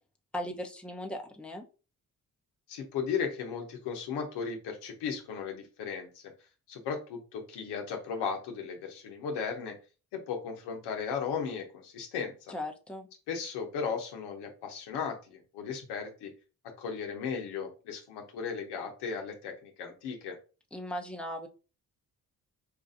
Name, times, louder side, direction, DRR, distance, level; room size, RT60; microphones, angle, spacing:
voice 1, 0.3-1.6 12.5-13.1 20.7-21.5, left 1 dB, 5° left, 2 dB, 0.8 m, -38 dB
voice 2, 2.7-6.2 6.7-9.7 10.1-12.5 13.3-16.3 16.8-20.4, left 6 dB, 90° left, 3 dB, 0.9 m, -36 dB
4.6 x 2.5 x 2.6 m, 0.34 s
supercardioid pair, 55°, 39 cm